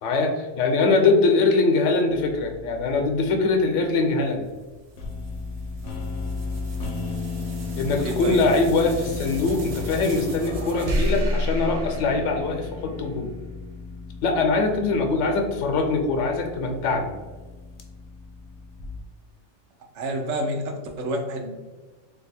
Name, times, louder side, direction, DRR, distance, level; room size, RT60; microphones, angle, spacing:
voice 1, 0.0-4.5 7.8-13.3 14.2-17.1, left 3 dB, 85° left, 4 dB, 0.9 m, -22 dB
sound 1, 2.1-3.6 5.0-19.0, left 4 dB, 60° left, 0.7 m, -35 dB
sound 2, 4.4-13.0, equal, 60° right, 0.4 m, -32 dB
voice 2, 8.0-8.5 19.9-21.6, right 1 dB, 80° right, 2 dB, 1.0 m, -28 dB
2.7 x 2.3 x 4.0 m, 1.2 s
omnidirectional pair, 1.2 m